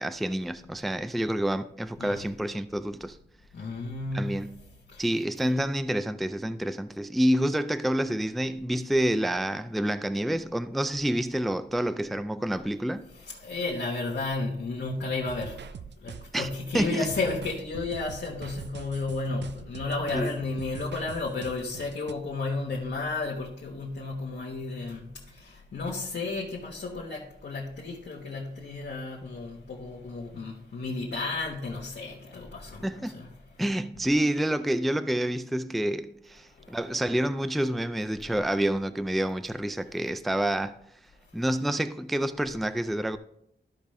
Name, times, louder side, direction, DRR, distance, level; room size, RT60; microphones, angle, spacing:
voice 1, 0.0-3.2 4.1-4.5 5.0-13.0 16.3-16.5 16.7-17.1 20.1-20.3 32.8-33.2 33.6-40.7 41.3-43.2, right 1 dB, ahead, 0.3 m, -28 dB
voice 2, 3.5-4.5 4.9-5.1 13.1-15.6 16.0-33.3 36.5-36.8, left 3 dB, 80° left, 1.3 m, -33 dB
sound 1, 15.2-22.1, right 8 dB, 90° right, 0.5 m, -43 dB
13.5 x 5.1 x 3.2 m
wide cardioid pair, 125°, 18 cm